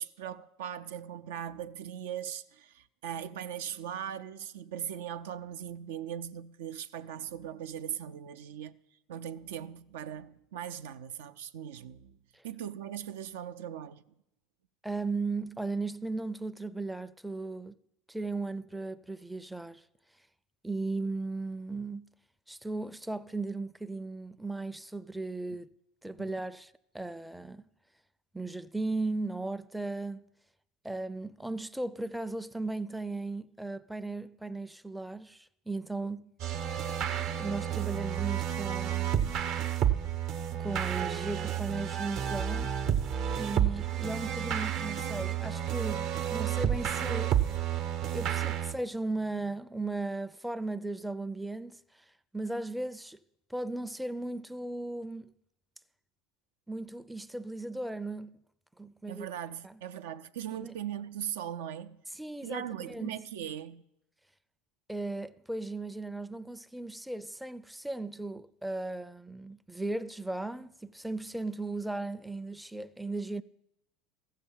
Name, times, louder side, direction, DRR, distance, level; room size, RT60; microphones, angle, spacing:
voice 1, 0.0-8.7 9.1-12.2 12.4-14.0 26.2-26.3 59.1-62.0 62.4-63.8, right 10 dB, 80° right, 0.5 m, -39 dB
voice 2, 14.8-17.7 18.1-19.8 20.6-22.1 22.5-25.7 26.0-27.6 28.3-30.2 30.8-36.3 37.4-39.3 40.6-42.8 43.3-47.4 48.1-52.1 52.3-53.2 53.5-55.3 56.7-58.4 58.8-59.3 59.6-59.8 60.6-60.7 62.1-63.2 64.9-73.4, right 2 dB, 5° right, 0.4 m, -36 dB
sound 1, 36.4-48.7, right 10 dB, 60° right, 0.8 m, -31 dB
14.5 x 6.6 x 7.2 m
supercardioid pair, 100°, 0 cm